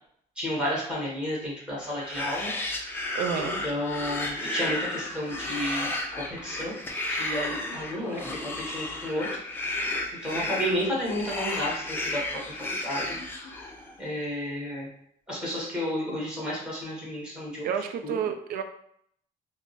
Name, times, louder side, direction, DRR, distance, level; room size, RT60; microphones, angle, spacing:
voice 1, 0.4-2.5 3.3-5.9 6.3-6.8 7.1-9.3 10.2-13.2 14.0-14.9 15.3-17.7 18.0-18.1, equal, 5° right, -6 dB, 1.3 m, -32 dB
sound 1, 1.9-13.9, left 2 dB, 15° left, 0.4 m, -33 dB
voice 2, 3.1-3.7 10.3-10.6 17.6-18.6, right 8 dB, 70° right, 8 dB, 0.4 m, -31 dB
3.3 x 2.0 x 3.9 m, 0.69 s
cardioid pair, 170°, 15 cm